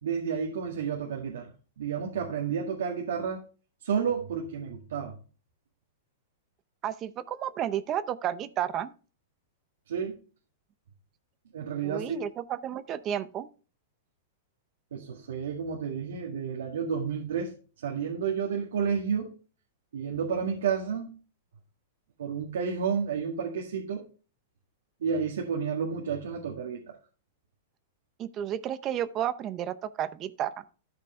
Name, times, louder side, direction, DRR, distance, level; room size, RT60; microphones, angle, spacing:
voice 1, 0.0-1.5 1.8-3.4 3.8-5.1 9.9-10.1 11.5-12.2 14.9-17.5 17.8-19.3 19.9-21.1 22.2-24.0 25.0-26.8, right 6 dB, 85° right, 0 dB, 1.8 m, -31 dB
voice 2, 6.8-8.9 11.8-13.5 28.2-30.6, right 10 dB, 30° right, 14 dB, 0.6 m, -32 dB
13.0 x 5.1 x 3.2 m, 0.37 s
hypercardioid pair, 145°, 0 cm